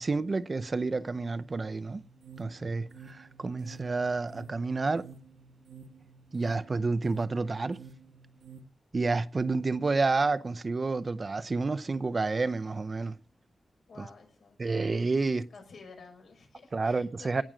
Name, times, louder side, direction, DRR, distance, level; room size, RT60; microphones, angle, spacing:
voice 1, 0.0-2.0 2.4-5.1 6.3-7.8 8.9-13.2 14.0-14.1 14.6-15.5 16.7-17.4, right 3 dB, 40° right, 0.6 m, -29 dB
sound 1, 1.9-8.6, right 5 dB, 85° right, 1.4 m, -52 dB
voice 2, 13.9-14.6 15.5-17.4, left 4 dB, 80° left, 6.3 m, -51 dB
18.0 x 6.3 x 7.4 m
wide cardioid pair, 105°, 0 cm